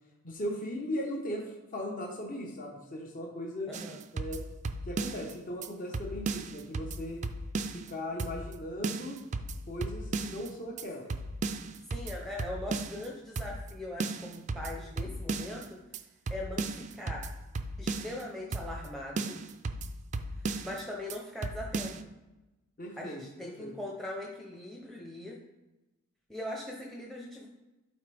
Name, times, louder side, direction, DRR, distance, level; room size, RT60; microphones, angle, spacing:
voice 1, 0.2-3.7 4.1-4.4 4.9-7.2 7.7-9.2 9.7-11.1 22.8-23.7, equal, 40° left, -1 dB, 1.0 m, -38 dB
sound 1, 3.7-5.3 5.6-5.7 5.9-7.9 8.2-8.6 8.8-10.5 10.8-10.9 11.1-13.1 13.4-13.7 14.0-15.7 15.9-16.0 16.3-18.2 18.5-18.9 19.2-20.8 21.1-21.2 21.4-22.0, right 3 dB, 35° right, 0.4 m, -35 dB
voice 2, 11.9-15.8 16.3-17.3 17.8-19.4 20.4-22.1 23.0-25.4 26.3-27.5, left 1 dB, ahead, -2 dB, 0.7 m, -41 dB
12.0 x 4.1 x 3.4 m, 1.1 s
head